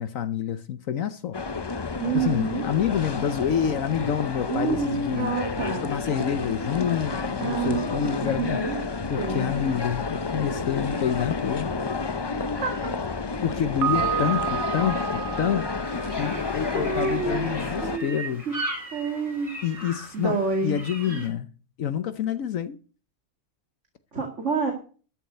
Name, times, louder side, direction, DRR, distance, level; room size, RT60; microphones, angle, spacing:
voice 1, 0.0-1.6 2.1-5.3 5.8-8.6 9.1-11.7 13.4-18.4 19.6-21.5 21.8-22.8, left 9 dB, 70° left, 1.2 m, -28 dB
sound 1, 1.3-18.0, left 4 dB, 40° left, 0.3 m, -30 dB
voice 2, 2.0-2.6 4.5-5.8 7.4-8.8 9.2-9.6 12.5-12.9 16.2-18.1 18.5-18.6 18.9-19.6 20.1-20.8 21.1-21.2 24.1-24.7, right 4 dB, 55° right, 2.7 m, -29 dB
Piano, 13.8-16.7, right 11 dB, 85° right, 1.6 m, -30 dB
sound 2, 15.8-21.3, right 1 dB, 25° right, 6.2 m, -38 dB
13.5 x 7.5 x 7.9 m
omnidirectional pair, 1.5 m